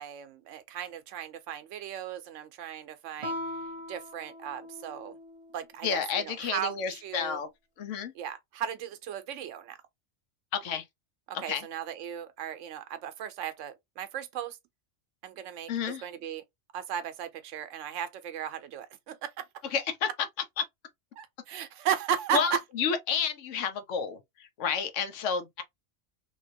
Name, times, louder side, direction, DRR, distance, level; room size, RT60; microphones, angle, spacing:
voice 1, 0.0-3.4 3.9-5.2 5.5-7.4 8.1-9.8 11.3-14.6 15.2-16.4 16.7-19.5 21.2-22.6, right 9 dB, 90° right, 1.0 m, -36 dB
Guitar, 3.2-5.7, left 1 dB, 35° right, 0.7 m, -40 dB
voice 2, 5.8-7.5 7.8-8.1 10.5-10.8 11.3-11.6 15.7-16.0 19.7-20.1 20.6-20.7 22.3-25.6, left 6 dB, 85° left, 1.1 m, -30 dB
3.1 x 2.8 x 2.6 m
omnidirectional pair, 1.2 m